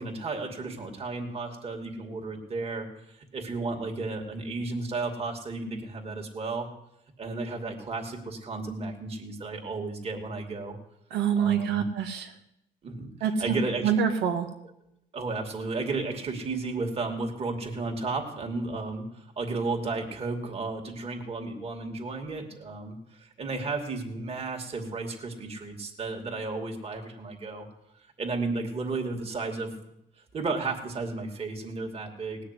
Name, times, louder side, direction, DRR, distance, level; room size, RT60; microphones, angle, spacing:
voice 1, 0.0-6.7 7.2-10.8 11.4-11.8 12.8-13.9 15.1-27.7 28.2-29.7 30.3-32.4, right 3 dB, 35° right, 2 dB, 2.7 m, -33 dB
voice 2, 11.1-12.3 13.2-13.6 13.8-14.5, right 7 dB, 85° right, 5 dB, 2.3 m, -26 dB
18.5 x 6.6 x 9.8 m, 0.80 s
cardioid pair, 110°, 17 cm